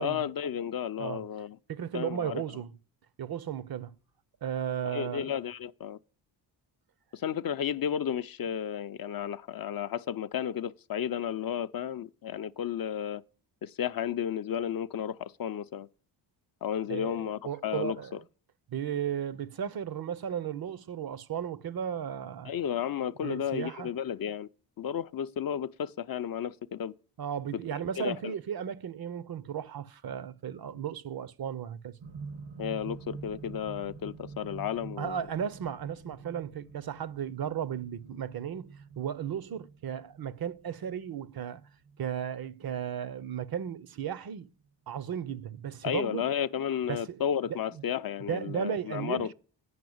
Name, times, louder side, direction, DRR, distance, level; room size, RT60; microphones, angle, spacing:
voice 1, 0.0-1.6 1.9-2.4 4.8-6.0 7.1-13.2 13.6-15.9 16.6-18.0 22.4-24.5 24.8-26.9 28.0-28.2 32.6-35.2 45.8-49.3, left 9 dB, 50° left, 0.5 m, -33 dB
voice 2, 1.7-2.7 3.2-3.9 4.4-5.3 16.9-18.1 18.7-22.5 23.2-23.9 27.2-32.0 35.0-41.6 42.0-44.5 44.9-46.2 46.9-47.2 47.7-47.8 48.3-49.3, right 8 dB, 50° right, 0.6 m, -35 dB
sound 1, 32.0-44.1 45.1-45.2, right 5 dB, 85° right, 2.5 m, -47 dB
9.4 x 5.5 x 7.8 m
wide cardioid pair, 145°, 47 cm